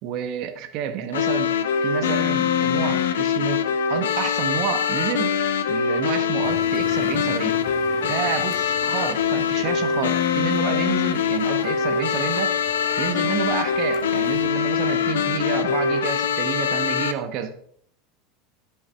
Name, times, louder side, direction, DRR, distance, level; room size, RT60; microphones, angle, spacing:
voice 1, 0.0-1.5 1.8-3.6 3.9-5.3 5.7-7.5 8.0-12.5 13.0-17.5, right 9 dB, 50° right, 8 dB, 1.2 m, -29 dB
sound 1, 1.1-17.1, left 7 dB, 70° left, 0.6 m, -23 dB
sound 2, 6.4-14.5, left 7 dB, 45° left, 1.4 m, -43 dB
11.0 x 5.6 x 4.5 m, 0.64 s
figure-of-eight pair, 80°, 0 cm